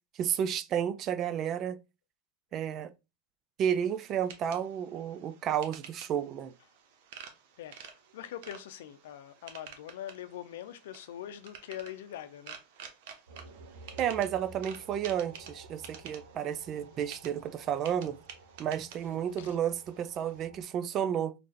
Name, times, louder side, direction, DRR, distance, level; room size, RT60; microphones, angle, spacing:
voice 1, 0.1-1.8 2.5-2.9 3.6-6.5 14.0-18.2 18.6-21.3, right 9 dB, 40° right, 0.4 m, -32 dB
sound 1, 3.7-20.4, right 7 dB, 70° right, 0.8 m, -51 dB
voice 2, 7.6-12.6 19.4-19.6, left 11 dB, 80° left, 0.5 m, -43 dB
sound 2, 13.3-20.6, right 2 dB, 85° right, 1.0 m, -53 dB
3.3 x 2.5 x 3.8 m
supercardioid pair, 120°, 0 cm